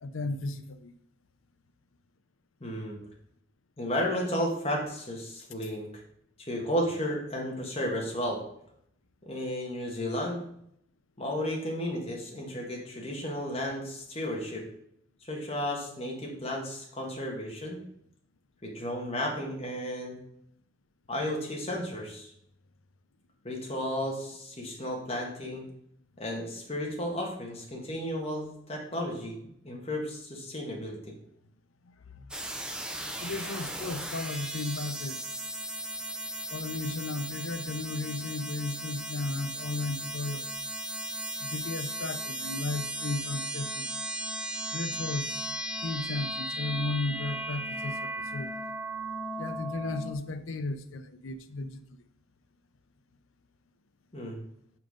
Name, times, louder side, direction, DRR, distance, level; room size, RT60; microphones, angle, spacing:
voice 1, 0.0-0.9 23.8-23.9 31.9-32.3 33.2-35.2 36.5-40.6 41.4-44.1 44.7-45.5 45.8-48.5 49.4-51.8, left 2 dB, 85° left, 0.6 m, -35 dB
voice 2, 2.6-3.0 3.8-5.9 6.4-8.4 9.2-10.4 11.2-14.6 15.2-17.8 18.6-20.2 21.1-22.3 23.4-25.6 26.2-31.0 54.1-54.4, equal, 30° left, 1.4 m, -33 dB
sound 1, 32.3-50.1, right 1 dB, 5° right, 0.5 m, -36 dB
6.0 x 4.9 x 5.0 m
head